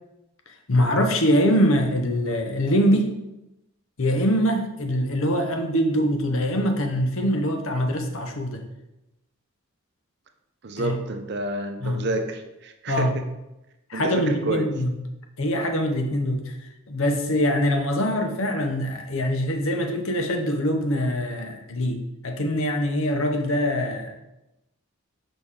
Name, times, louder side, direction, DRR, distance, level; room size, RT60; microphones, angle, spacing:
voice 1, 0.7-3.2 4.0-8.6 10.8-11.0 11.8-12.0 12.9-13.2 13.9-14.9 15.4-16.6 16.9-24.2, equal, 65° left, 5 dB, 0.9 m, -23 dB
voice 2, 10.6-13.2 13.9-14.7, right 2 dB, 50° right, 6 dB, 0.6 m, -29 dB
6.4 x 5.1 x 3.7 m, 0.93 s
head